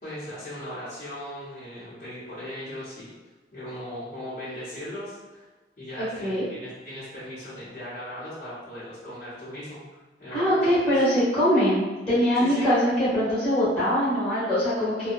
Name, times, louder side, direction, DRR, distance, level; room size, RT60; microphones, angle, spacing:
voice 1, 0.0-3.1 3.5-5.4 5.8-10.9 12.3-12.7, left 1 dB, 45° left, -12 dB, 0.9 m, -38 dB
voice 2, 6.0-6.4 10.3-15.1, equal, 5° left, -13 dB, 1.3 m, -23 dB
2.7 x 2.2 x 2.4 m, 1.2 s
head